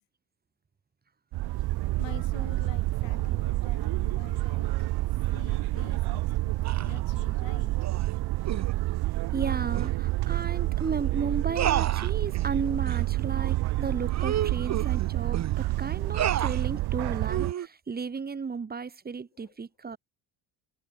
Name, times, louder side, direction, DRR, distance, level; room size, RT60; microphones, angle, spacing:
sound 1, 1.3-17.5, right 18 dB, 60° right, 0.9 m, -28 dB
voice 1, 2.0-4.7 5.3-7.7 16.7-16.8 19.3-19.5, left 19 dB, 80° left, 4.7 m, -47 dB
sound 2, 6.6-7.0 7.8-8.1 8.5-8.7 9.7-9.9 10.3-10.4 10.8-10.9 11.6-12.5 12.9-13.1 13.5-13.6 14.1-15.5 16.1-16.7 17.3-17.7, right 10 dB, 40° right, 1.8 m, -31 dB
voice 2, 9.3-20.0, right 5 dB, 20° right, 2.7 m, -34 dB
cardioid pair, 150°, 43 cm